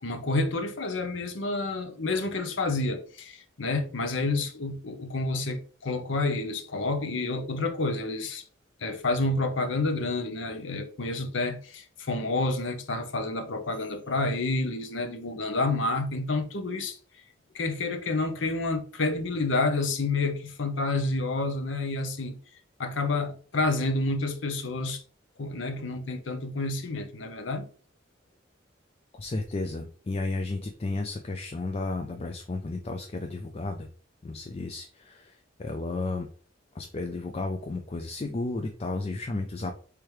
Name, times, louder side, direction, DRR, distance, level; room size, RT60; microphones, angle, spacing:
voice 1, 0.0-8.4 8.8-17.0 17.5-22.4 22.8-25.0 25.4-27.7, left 2 dB, 85° left, 0.7 m, -29 dB
voice 2, 29.1-33.9 34.2-36.3 36.7-39.7, left 2 dB, 35° left, 0.4 m, -33 dB
3.4 x 3.1 x 4.8 m
head